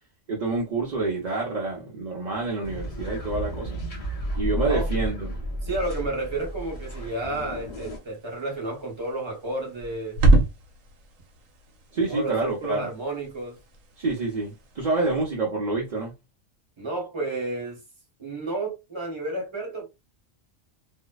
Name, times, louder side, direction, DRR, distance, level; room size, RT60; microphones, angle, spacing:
voice 1, 0.3-3.8 4.3-5.4 11.9-12.9 14.0-16.1, right 3 dB, 45° right, 0.6 m, -27 dB
sound 1, 2.6-8.0, right 1 dB, 35° left, 0.7 m, -32 dB
voice 2, 5.6-10.2 12.1-13.6 16.8-17.8 18.2-19.9, right 2 dB, 25° right, 0.9 m, -31 dB
sound 2, 6.1-15.0, right 2 dB, 75° right, 1.0 m, -29 dB
2.6 x 2.1 x 2.2 m
omnidirectional pair, 1.4 m